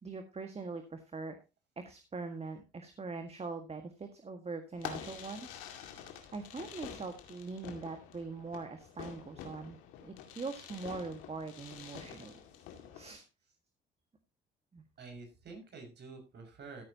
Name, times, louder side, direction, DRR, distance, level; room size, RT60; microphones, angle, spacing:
voice 1, 0.0-1.4 1.8-5.6 5.9-6.0 6.3-9.8 10.0-12.4 12.9-13.2 14.7-14.8, right 4 dB, 30° right, 6 dB, 1.8 m, -42 dB
Fireworks, 4.7-13.1, left 9 dB, 90° left, 2.2 m, -47 dB
voice 2, 15.0-16.8, right 4 dB, 60° right, 3 dB, 5.8 m, -48 dB
15.0 x 9.1 x 2.9 m, 0.27 s
supercardioid pair, 70°, 20 cm